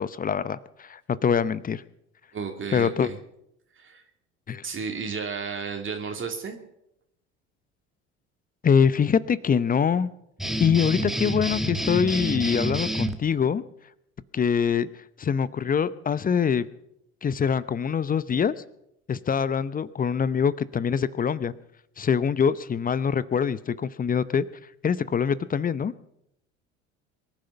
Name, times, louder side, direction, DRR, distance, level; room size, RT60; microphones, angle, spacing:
voice 1, 0.0-1.8 2.7-3.1 4.5-4.7 8.6-10.1 10.6-13.6 14.3-14.9 15.2-16.7 17.2-18.5 19.1-21.5 22.0-24.5 24.8-25.9, left 7 dB, 25° left, 17 dB, 0.8 m, -24 dB
voice 2, 2.3-3.2 3.8-4.0 4.6-6.6, right 5 dB, 35° right, 3 dB, 2.7 m, -33 dB
sound 1, 10.4-13.1, right 1 dB, ahead, 1.5 m, -28 dB
23.5 x 10.5 x 5.8 m, 0.80 s
hypercardioid pair, 65°, 34 cm